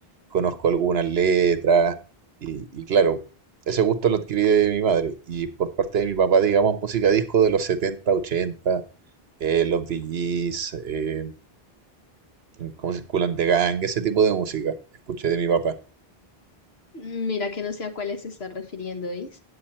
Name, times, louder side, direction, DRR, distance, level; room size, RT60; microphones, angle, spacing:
voice 1, 0.3-2.0 2.4-3.2 3.7-8.8 9.4-11.3 12.6-14.7 15.1-15.7, right 6 dB, 80° right, 12 dB, 1.2 m, -22 dB
voice 2, 16.9-19.4, left 4 dB, 80° left, 7 dB, 1.6 m, -31 dB
9.4 x 8.2 x 4.2 m, 0.33 s
omnidirectional pair, 1.0 m